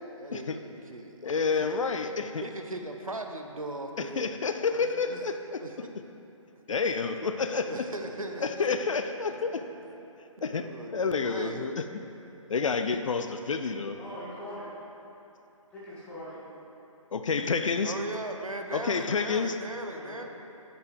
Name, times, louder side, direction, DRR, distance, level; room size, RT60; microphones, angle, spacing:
voice 1, 0.2-1.9 2.4-5.3 5.6-5.9 7.6-8.8 10.4-11.8 17.8-20.2, right 2 dB, 90° right, 5 dB, 0.6 m, -39 dB
voice 2, 1.2-2.4 4.0-5.6 6.7-7.7 8.4-9.6 10.4-10.7 10.9-11.8 12.5-14.0 17.1-17.9 18.7-19.6, left 5 dB, 70° left, 7 dB, 0.4 m, -29 dB
voice 3, 8.2-8.6 9.2-9.6 13.9-14.7 15.7-16.4 19.9-20.2, equal, 5° left, -10 dB, 1.6 m, -43 dB
8.9 x 5.2 x 3.4 m, 2.9 s
figure-of-eight pair, 135°, 17 cm